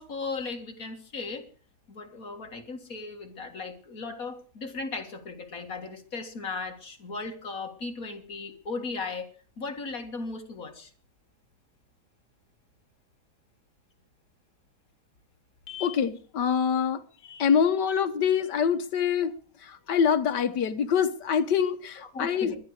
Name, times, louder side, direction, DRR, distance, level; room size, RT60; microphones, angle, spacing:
voice 1, 0.0-1.5 1.9-10.9 22.0-22.6, left 4 dB, 55° left, 2.3 m, -37 dB
voice 2, 15.7-22.6, left 7 dB, 75° left, 1.7 m, -25 dB
20.5 x 12.5 x 4.8 m
omnidirectional pair, 1.9 m